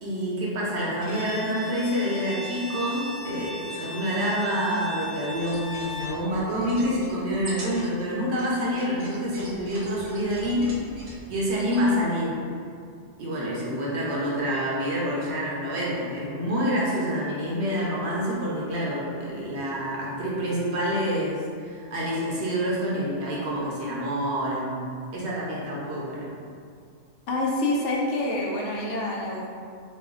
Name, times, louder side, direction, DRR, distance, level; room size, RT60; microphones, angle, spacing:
voice 1, 0.0-10.8 11.3-12.4 13.2-24.8 25.1-26.3, equal, 65° right, -5 dB, 1.0 m, -27 dB
Bowed string instrument, 1.0-6.2, equal, 15° left, 0.8 m, -38 dB
sound 1, 5.3-11.8, right 1 dB, 45° right, 0.5 m, -43 dB
voice 2, 27.3-29.5, left 2 dB, 80° left, -2 dB, 0.9 m, -27 dB
3.0 x 2.1 x 3.7 m, 2.2 s
omnidirectional pair, 1.2 m